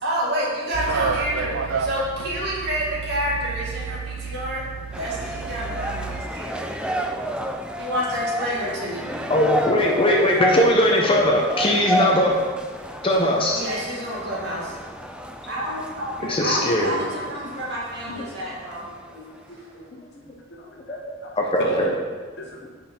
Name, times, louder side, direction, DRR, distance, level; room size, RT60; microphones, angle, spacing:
voice 1, 0.0-4.6 4.9-6.6 7.8-9.2 13.5-14.8 15.5-16.1 16.4-19.2 19.5-19.7, equal, 50° right, -5 dB, 2.2 m, -29 dB
sound 1, 0.7-6.2, right 5 dB, 70° right, 0.5 m, -30 dB
sound 2, 4.9-19.2, right 1 dB, 5° right, 0.4 m, -31 dB
voice 2, 9.3-12.3 13.0-13.6 16.3-16.9 18.1-18.2 20.9-21.0 21.3-21.9, left 1 dB, 25° left, -1 dB, 0.7 m, -20 dB
voice 3, 12.9-13.3 14.4-14.6 16.2-16.5 19.5-19.8 20.2-21.3 21.6-22.0 22.4-22.7, left 1 dB, 55° left, -1 dB, 1.3 m, -35 dB
7.9 x 5.3 x 4.3 m, 1.5 s
head